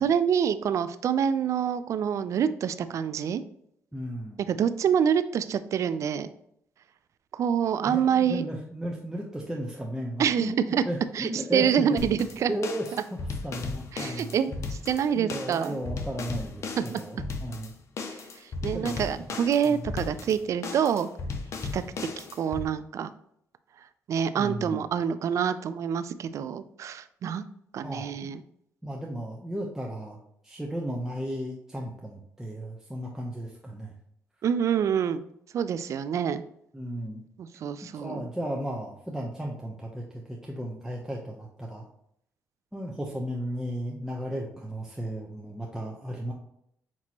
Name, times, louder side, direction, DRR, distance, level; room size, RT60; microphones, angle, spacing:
voice 1, 0.0-3.4 4.5-6.3 7.3-8.5 10.2-10.8 11.1-12.5 12.9-13.0 13.9-15.8 16.8-17.0 18.0-21.1 21.7-21.8 22.2-23.1 24.1-27.4 27.7-28.4 34.4-35.3 35.5-36.4 37.4-38.2, right 8 dB, 60° right, 13 dB, 0.3 m, -26 dB
voice 2, 3.9-4.4 7.8-12.1 12.5-14.6 15.1-17.7 18.7-19.3 19.6-19.8 24.3-24.8 27.8-28.3 28.8-30.2 30.4-33.9 36.7-37.2 38.0-41.8 42.7-46.3, equal, 5° right, -2 dB, 0.7 m, -35 dB
sound 1, 12.0-22.6, left 4 dB, 60° left, 0.6 m, -36 dB
6.0 x 2.9 x 2.8 m, 0.71 s
supercardioid pair, 65°, 6 cm